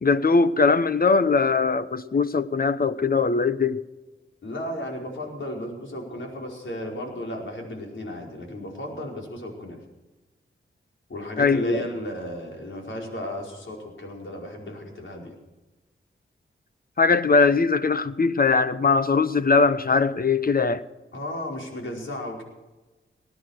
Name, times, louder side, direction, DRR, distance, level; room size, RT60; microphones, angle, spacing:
voice 1, 0.0-3.8 11.4-11.8 17.0-20.8, left 4 dB, 45° left, 0.9 m, -21 dB
voice 2, 4.4-9.8 11.1-15.3 21.1-22.4, left 1 dB, 65° left, 4.9 m, -34 dB
20.0 x 10.0 x 6.5 m
cardioid pair, 60°, 21 cm